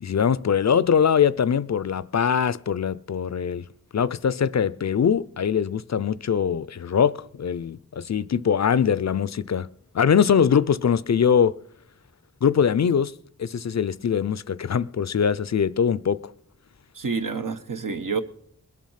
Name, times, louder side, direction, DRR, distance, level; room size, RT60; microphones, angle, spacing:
voice 1, 0.0-3.6 3.9-9.7 9.9-11.6 12.4-13.1 13.4-16.3, left 7 dB, 55° left, 0.4 m, -22 dB
voice 2, 16.9-18.2, right 5 dB, 75° right, 1.0 m, -28 dB
20.5 x 7.3 x 5.6 m
wide cardioid pair, 55°, 32 cm